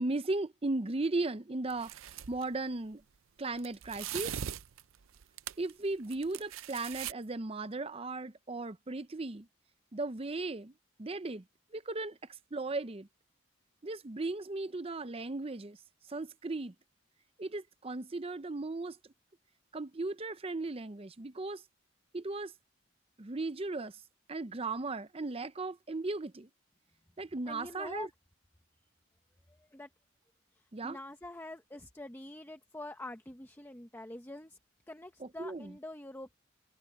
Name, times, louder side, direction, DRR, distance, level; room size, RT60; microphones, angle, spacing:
voice 1, 0.0-3.0 3.4-4.4 5.6-9.5 9.9-10.7 11.0-11.4 11.7-12.2 12.5-13.1 13.8-15.8 16.1-16.7 17.4-19.0 19.7-21.6 22.1-22.5 23.2-24.0 24.3-26.5 27.2-28.1 30.7-31.0 35.2-35.7, right 2 dB, 30° right, 0.6 m, -36 dB
sound 1, 1.7-2.4 3.6-5.7 6.0-7.1, right 10 dB, 85° right, 0.6 m, -41 dB
voice 2, 27.5-28.1 29.5-29.9 30.5-34.6 34.9-36.4, left 1 dB, 10° left, 0.9 m, -46 dB
head